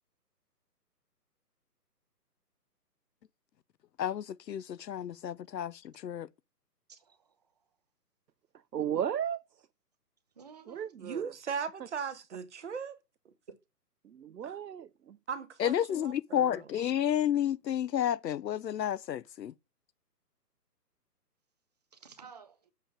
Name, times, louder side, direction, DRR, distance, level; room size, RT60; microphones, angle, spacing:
voice 1, 4.0-6.3 15.6-19.5, left 10 dB, 85° left, 0.7 m, -31 dB
voice 2, 6.9-7.6 10.3-10.9 13.5-13.6 21.9-22.7, right 6 dB, 25° right, 0.9 m, -53 dB
voice 3, 8.7-9.4 10.7-11.3 14.0-15.2, right 9 dB, 80° right, 0.9 m, -35 dB
voice 4, 11.0-13.0 14.4-14.6 15.3-16.7, right 6 dB, 45° right, 1.4 m, -38 dB
7.5 x 5.2 x 7.3 m
hypercardioid pair, 170°, 49 cm